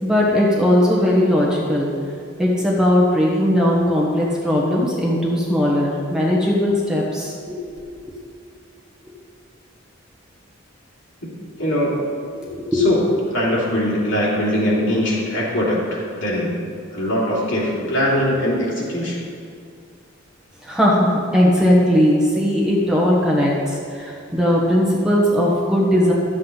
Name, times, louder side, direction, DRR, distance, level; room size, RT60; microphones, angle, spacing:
voice 1, 0.0-1.9 2.4-7.6 7.9-8.1 12.7-12.9 20.6-26.1, left 1 dB, 5° right, -5 dB, 1.3 m, -18 dB
voice 2, 11.6-12.1 12.7-13.0 13.3-16.5 16.9-19.2, equal, 70° left, -5 dB, 2.7 m, -21 dB
12.0 x 7.5 x 4.0 m, 2.2 s
head